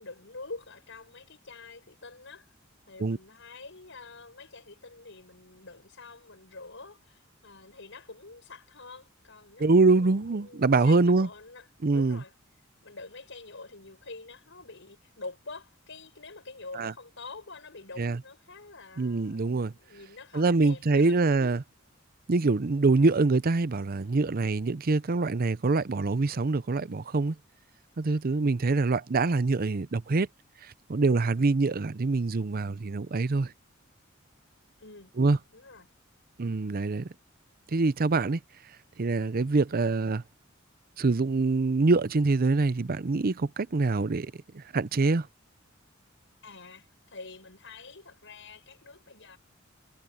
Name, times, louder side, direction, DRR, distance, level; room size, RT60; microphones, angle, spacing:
voice 1, 0.0-2.5 2.9-11.7 11.9-12.3 12.8-21.2 34.8-35.1 35.5-35.9 46.4-49.4, left 3 dB, 65° left, 7.0 m, -46 dB
voice 2, 9.6-11.3 11.8-12.2 16.8-16.9 18.0-18.2 19.0-19.7 20.3-21.6 22.3-27.4 28.0-30.3 30.9-33.5 35.2-35.4 36.4-37.1 37.7-38.4 39.0-40.2 41.0-45.3, right 3 dB, 45° right, 0.6 m, -25 dB
head